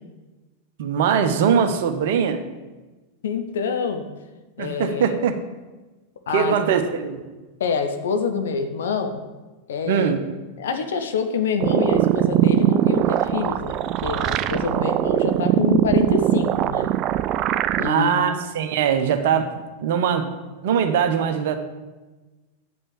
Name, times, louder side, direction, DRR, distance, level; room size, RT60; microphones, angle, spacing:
voice 1, 0.8-2.4 4.6-5.4 6.3-7.2 9.9-10.3 17.9-19.5 19.8-20.3 20.6-21.6, right 7 dB, 55° right, 8 dB, 0.8 m, -21 dB
voice 2, 3.2-4.1 4.6-5.2 6.3-6.6 7.6-9.2 9.7-10.1 10.6-16.9 17.8-18.1, left 6 dB, 60° left, 7 dB, 0.9 m, -26 dB
sound 1, 11.6-17.9, right 12 dB, 35° right, 0.3 m, -21 dB
8.2 x 5.4 x 7.1 m, 1.2 s
figure-of-eight pair, 90°, 0 cm